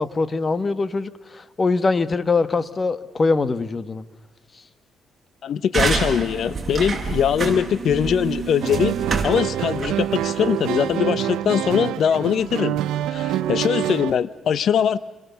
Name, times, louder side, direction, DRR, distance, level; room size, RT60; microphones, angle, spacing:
voice 1, 0.0-4.0, left 3 dB, 30° left, 14 dB, 1.5 m, -23 dB
voice 2, 5.4-9.0 9.2-12.8 13.1-15.0, left 8 dB, 65° left, 16 dB, 0.9 m, -21 dB
sound 1, 5.7-11.0, right 4 dB, 30° right, 5.8 m, -27 dB
sound 2, 8.6-14.2, right 12 dB, 90° right, 0.8 m, -26 dB
28.5 x 22.0 x 7.0 m, 1.2 s
cardioid pair, 90°, 0 cm